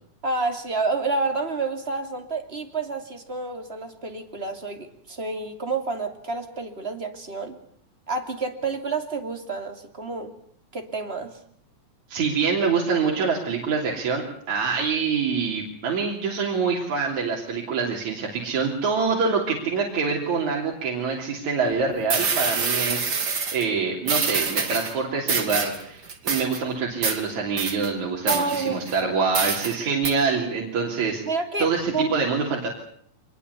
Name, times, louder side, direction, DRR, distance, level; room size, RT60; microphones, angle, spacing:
voice 1, 0.2-7.6 8.1-10.3 10.7-11.4 28.3-29.4 31.3-32.1, right 3 dB, 20° right, 5 dB, 2.8 m, -29 dB
voice 2, 12.1-31.2 31.6-32.7, right 5 dB, 75° right, -1 dB, 4.5 m, -25 dB
sound 1, 21.7-21.8 22.1-23.7 24.1-24.9 25.3-25.8 26.1-26.6 27.0-27.2 27.6-27.9 28.3-29.0 29.3-29.8 30.0-30.1, right 5 dB, 40° right, 3.0 m, -26 dB
25.0 x 21.0 x 8.3 m, 0.64 s
omnidirectional pair, 3.4 m